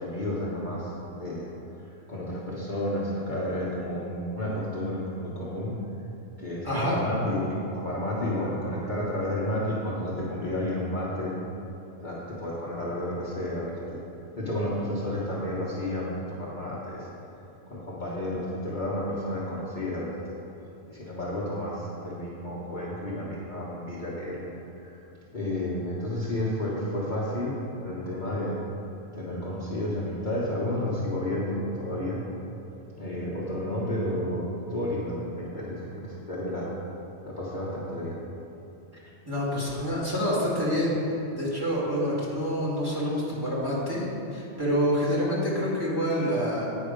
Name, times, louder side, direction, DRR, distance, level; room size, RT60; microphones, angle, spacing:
voice 1, 0.0-1.5 1.7-5.8 6.4-7.4 7.7-11.3 12.0-14.0 14.4-17.1 17.7-20.3 20.9-24.4 24.8-25.0 25.3-28.6 29.1-32.2 33.0-36.7 37.2-38.2, left 1 dB, 40° left, -6 dB, 1.1 m, -31 dB
voice 2, 6.6-7.0 39.3-40.9 41.3-46.7, equal, 20° right, -8 dB, 1.9 m, -27 dB
9.0 x 5.5 x 5.0 m, 3.0 s
omnidirectional pair, 1.3 m